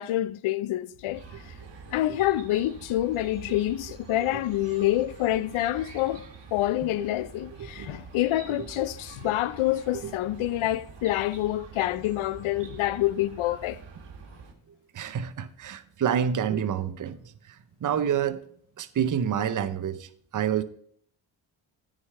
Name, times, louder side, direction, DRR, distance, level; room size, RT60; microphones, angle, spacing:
voice 1, 0.0-1.2 1.9-6.2 6.5-13.8, left 14 dB, 75° left, 0.6 m, -27 dB
Chirp tweet, 1.1-14.5, right 5 dB, 55° right, 1.8 m, -46 dB
voice 2, 4.3-4.7 7.6-7.9 8.6-8.8 9.9-10.1 14.9-18.4 18.8-20.6, right 8 dB, 40° right, 0.7 m, -29 dB
9.6 x 5.0 x 5.5 m
supercardioid pair, 50°, 50 cm